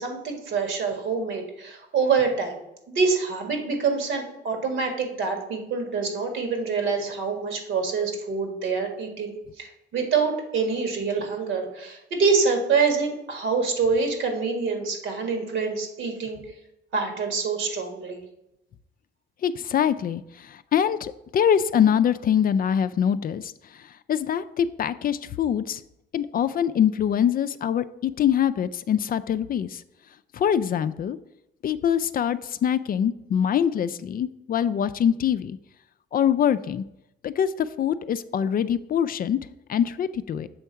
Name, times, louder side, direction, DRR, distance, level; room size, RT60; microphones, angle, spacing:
voice 1, 0.0-2.6 2.9-16.4 16.9-18.2, right 5 dB, 75° right, 4 dB, 1.8 m, -26 dB
voice 2, 19.4-23.5 24.1-25.8 26.1-29.8 30.3-31.2 31.6-35.6 36.1-36.8 37.2-39.4 39.7-40.5, left 9 dB, 45° left, 14 dB, 0.4 m, -24 dB
7.0 x 3.6 x 5.6 m, 0.85 s
cardioid pair, 90°, 20 cm